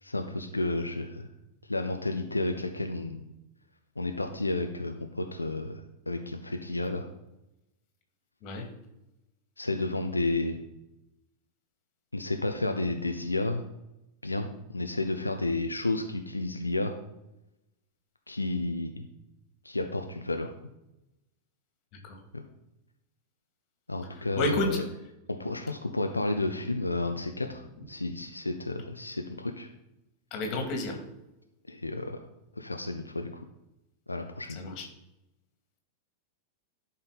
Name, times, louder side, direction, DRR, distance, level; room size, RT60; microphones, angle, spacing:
voice 1, 0.0-1.3 1.6-3.2 4.0-7.1 9.6-10.6 12.1-13.6 14.2-17.0 18.3-19.1 19.6-20.5 22.3-22.4 23.9-24.8 25.3-29.7 31.7-32.3 32.6-33.3 34.1-34.6, left 2 dB, 80° left, 5 dB, 0.6 m, -31 dB
voice 2, 24.4-24.8 30.3-31.0 34.6-34.9, left 2 dB, 40° left, 2 dB, 2.5 m, -30 dB
11.5 x 5.6 x 4.1 m, 0.94 s
figure-of-eight pair, 90°, 0 cm